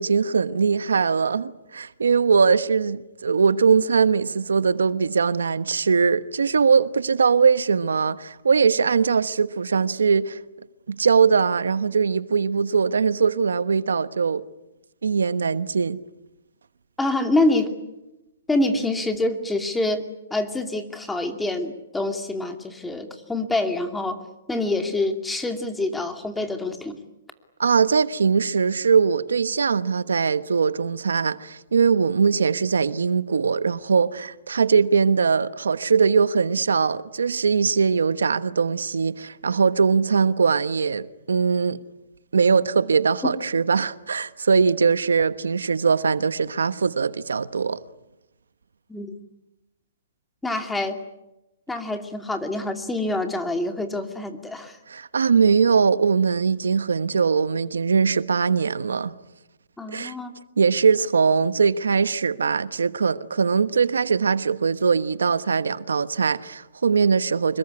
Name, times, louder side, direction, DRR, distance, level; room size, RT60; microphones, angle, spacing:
voice 1, 0.0-10.4 10.9-14.4 15.0-16.0 27.6-41.8 42.3-47.8 54.9-59.1 59.9-60.1 60.6-67.6, right 5 dB, 90° right, 1.2 m, -21 dB
voice 2, 17.0-17.7 18.5-20.0 20.3-24.2 24.5-27.0 43.2-43.3 48.9-49.1 50.4-51.0 51.7-54.8 59.8-60.3, left 2 dB, 5° left, 2.6 m, -26 dB
26.0 x 22.5 x 9.8 m
hypercardioid pair, 145°, 0 cm